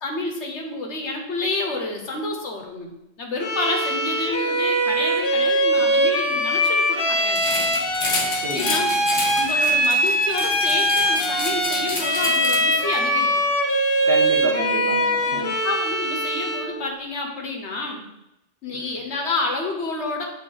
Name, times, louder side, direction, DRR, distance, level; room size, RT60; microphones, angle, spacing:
voice 1, 0.0-2.9 3.2-7.4 8.5-8.9 9.3-13.3 15.3-18.1 18.6-20.2, left 3 dB, 85° left, 1 dB, 1.5 m, -29 dB
Bowed string instrument, 3.4-16.8, right 1 dB, 60° left, 1.0 m, -22 dB
sound 1, 7.3-13.0, left 2 dB, 30° left, 0.8 m, -30 dB
voice 2, 8.3-8.8 14.1-15.6 18.7-19.0, right 1 dB, 65° right, -1 dB, 1.4 m, -30 dB
7.9 x 4.0 x 3.9 m, 0.89 s
omnidirectional pair, 1.1 m